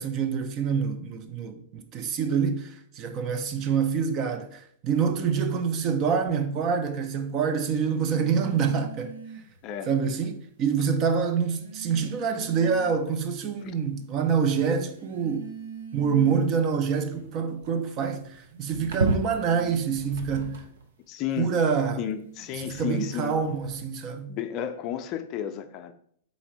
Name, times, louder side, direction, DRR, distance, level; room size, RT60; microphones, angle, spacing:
voice 1, 0.0-9.1 9.9-15.5 15.9-18.2 18.6-20.6 21.4-22.0 22.5-24.4, right 6 dB, 40° right, 0.5 m, -26 dB
sound 1, 5.8-6.1 7.9-9.6 10.6-10.7 11.4-13.1 13.6-14.1 14.9-20.9 21.7-23.8, right 3 dB, 75° right, 0.7 m, -37 dB
voice 2, 21.1-21.6 22.0-23.3 24.3-25.9, left 9 dB, 40° left, 0.4 m, -32 dB
4.1 x 3.9 x 2.9 m
hypercardioid pair, 100°, 0 cm